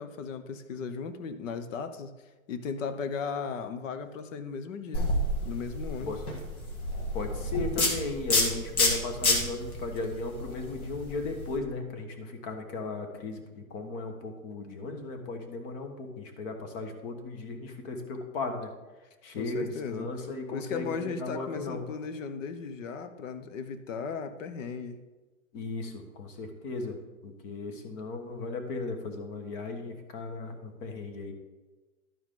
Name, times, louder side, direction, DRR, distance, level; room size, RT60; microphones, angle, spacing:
voice 1, 0.0-2.1 2.5-5.1 5.4-6.2 19.4-20.1 20.5-25.0, left 5 dB, 65° left, 10 dB, 1.0 m, -36 dB
sound 1, 4.9-11.6, left 1 dB, 85° left, 2.1 m, -29 dB
voice 2, 7.1-18.7 19.2-21.9 25.5-31.3, left 3 dB, 40° left, 5 dB, 1.5 m, -36 dB
12.0 x 4.7 x 3.8 m, 1.2 s
hypercardioid pair, 130°, 42 cm